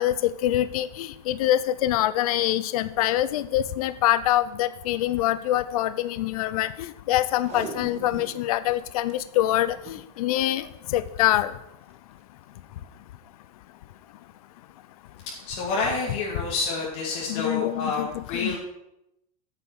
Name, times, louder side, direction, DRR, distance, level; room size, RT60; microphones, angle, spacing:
voice 1, 0.0-10.6 10.9-11.5 17.3-18.6, left 13 dB, 70° left, 14 dB, 0.6 m, -25 dB
Packing tape duct tape, 7.3-8.5 8.8-8.9 9.1-9.2 9.8-10.1 11.1-11.3 11.9-12.0, right 5 dB, 35° right, 1.4 m, -39 dB
voice 2, 15.5-18.6, left 3 dB, 50° left, -3 dB, 2.6 m, -28 dB
9.2 x 6.9 x 6.3 m, 0.85 s
supercardioid pair, 150°, 19 cm